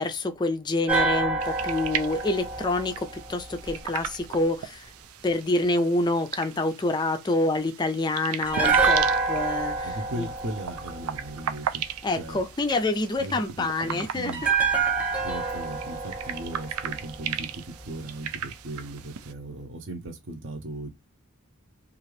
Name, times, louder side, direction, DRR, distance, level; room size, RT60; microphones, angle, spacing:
voice 1, 0.0-4.9 5.2-10.3 12.0-14.3, left 2 dB, 20° left, 0.4 m, -27 dB
sound 1, 0.9-4.1 8.5-11.7 14.3-17.5 17.8-17.9, right 4 dB, 5° right, 0.8 m, -27 dB
sound 2, 1.4-19.3, right 9 dB, 90° right, 0.4 m, -37 dB
voice 2, 9.8-11.8 12.2-12.4 13.2-14.4 15.2-20.9, right 1 dB, 60° right, 0.7 m, -37 dB
2.7 x 2.4 x 3.1 m
head